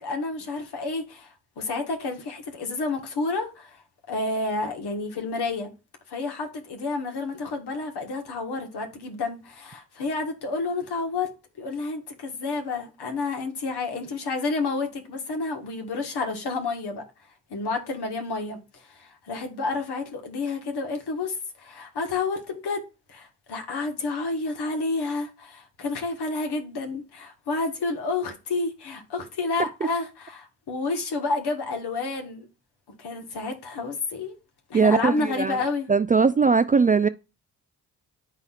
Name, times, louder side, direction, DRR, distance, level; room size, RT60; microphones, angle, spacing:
voice 1, 0.0-5.7 6.1-11.3 11.6-17.0 17.5-22.8 23.1-32.5 33.0-34.4 34.7-35.9, left 3 dB, 65° left, 1.5 m, -30 dB
voice 2, 34.7-35.6 35.9-37.1, right 5 dB, 20° right, 0.3 m, -20 dB
11.0 x 4.1 x 2.4 m
supercardioid pair, 45°, 42 cm